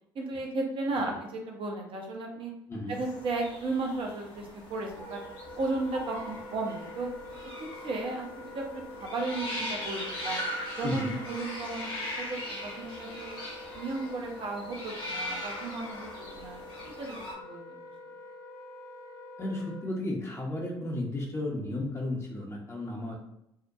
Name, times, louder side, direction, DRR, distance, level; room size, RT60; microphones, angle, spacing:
voice 1, 0.1-2.5 2.9-5.2 5.6-7.1 7.8-10.4 10.7-13.4 13.7-17.8, right 3 dB, 45° right, 1 dB, 0.7 m, -35 dB
sound 1, 2.9-17.4, left 1 dB, 45° left, 1.1 m, -40 dB
Wind instrument woodwind instrument, 4.9-19.9, left 2 dB, 80° left, 0.6 m, -46 dB
voice 2, 10.8-11.1 19.4-23.2, left 1 dB, 25° left, -2 dB, 0.8 m, -34 dB
2.7 x 2.1 x 2.5 m, 0.80 s
hypercardioid pair, 50°, 12 cm